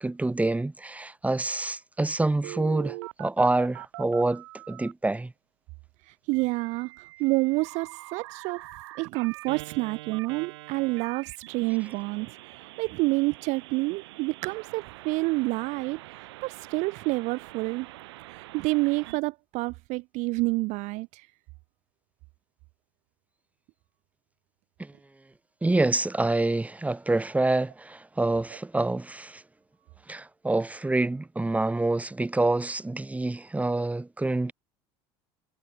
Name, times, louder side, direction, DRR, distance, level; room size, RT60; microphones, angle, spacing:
voice 1, 0.0-5.3 24.8-24.9 25.6-29.4 30.1-34.5, right 2 dB, 10° right, 1.7 m, -27 dB
Telephone, 2.4-4.9 6.3-19.2, right 19 dB, 85° right, 1.7 m, -44 dB
voice 2, 6.1-8.6 9.0-12.3 12.8-17.9 18.3-21.3, right 24 dB, 65° right, 0.4 m, -28 dB
supercardioid pair, 85°, 13 cm